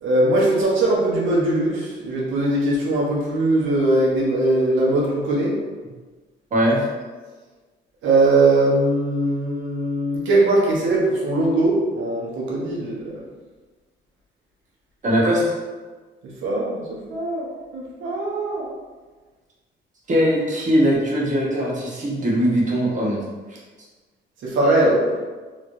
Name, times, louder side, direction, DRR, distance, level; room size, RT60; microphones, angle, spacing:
voice 1, 0.0-5.6 8.0-13.2 16.4-18.7 24.4-25.2, right 2 dB, 80° right, -4 dB, 1.0 m, -20 dB
voice 2, 6.5-6.8 15.0-15.4 20.1-23.2, equal, 40° right, -4 dB, 1.1 m, -20 dB
3.1 x 3.0 x 2.7 m, 1.3 s
cardioid pair, 90°, 20 cm